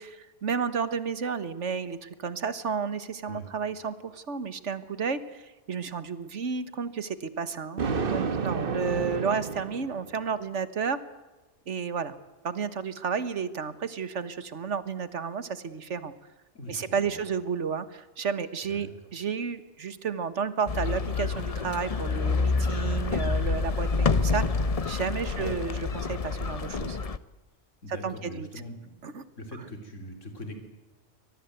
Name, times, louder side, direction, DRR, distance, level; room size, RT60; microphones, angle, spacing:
voice 1, 0.0-11.0 11.7-12.2 12.4-16.1 16.7-27.0 27.9-28.5 29.0-29.2, right 6 dB, 75° right, 14 dB, 1.7 m, -32 dB
Thunder, 7.8-10.3, right 5 dB, 50° right, 1.3 m, -30 dB
voice 2, 16.5-17.2 18.7-18.9 25.3-25.5 27.8-28.8 29.4-30.6, equal, 85° left, 5 dB, 3.5 m, -41 dB
sound 1, 20.7-27.2, left 4 dB, 35° left, 0.8 m, -28 dB
24.5 x 19.0 x 8.0 m, 1.1 s
omnidirectional pair, 1.2 m